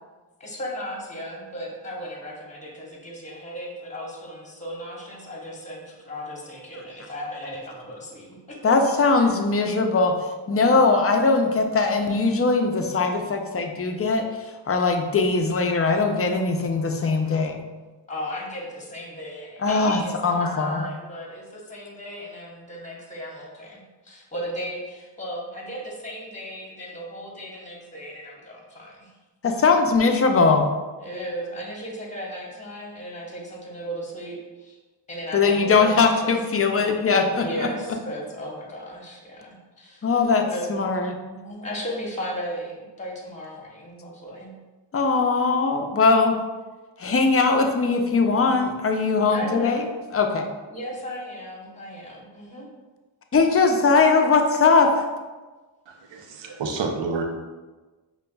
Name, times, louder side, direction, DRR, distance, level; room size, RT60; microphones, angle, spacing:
voice 1, 0.4-8.6 9.2-9.3 18.1-29.1 31.0-34.8 35.1-36.4 36.7-40.1 40.4-44.5 49.3-49.9 50.7-52.7, equal, 15° left, -2 dB, 0.9 m, -36 dB
voice 2, 8.6-10.2 10.5-17.6 19.6-20.8 29.4-30.6 35.3-37.7 40.0-40.4 40.7-41.2 44.9-46.4 47.0-49.8 50.1-50.5 53.3-55.1, left 4 dB, 30° left, 4 dB, 0.4 m, -20 dB
voice 3, 55.9-57.2, right 4 dB, 75° right, 3 dB, 0.6 m, -29 dB
5.1 x 2.2 x 2.2 m, 1.2 s
cardioid pair, 45°, 45 cm